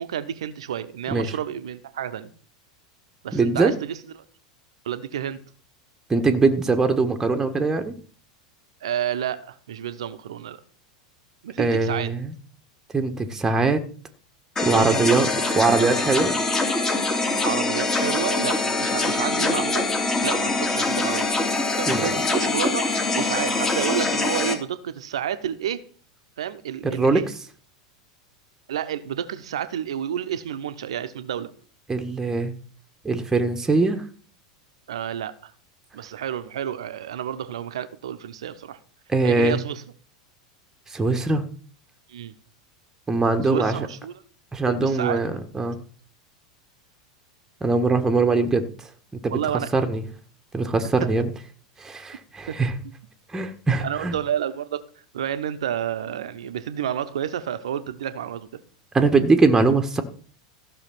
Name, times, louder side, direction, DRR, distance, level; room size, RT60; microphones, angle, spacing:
voice 1, 0.0-2.3 3.2-4.0 4.8-5.4 8.8-10.6 11.4-12.1 14.7-15.2 17.4-19.9 20.2-21.3 21.8-22.9 23.1-25.8 26.4-27.2 28.7-31.5 34.9-35.3 35.9-38.8 39.2-39.8 42.1-42.3 43.5-44.1 44.7-45.4 49.3-49.9 52.5-52.6 53.8-54.8 55.1-58.6, right 9 dB, 65° right, 1.1 m, -30 dB
voice 2, 3.3-3.7 6.1-8.0 11.6-12.3 12.9-13.8 14.6-15.3 15.5-16.3 21.8-22.1 26.8-27.2 31.9-32.5 33.0-34.0 39.1-39.6 40.9-41.4 43.1-43.9 44.5-45.8 47.6-48.9 49.2-49.4 49.7-50.0 50.5-51.3 51.8-52.7 53.3-54.1 58.9-60.0, right 3 dB, 15° right, 1.5 m, -21 dB
sound 1, 14.5-24.5, left 3 dB, 20° left, 2.6 m, -24 dB
14.5 x 6.3 x 6.1 m
figure-of-eight pair, 85°, 3 cm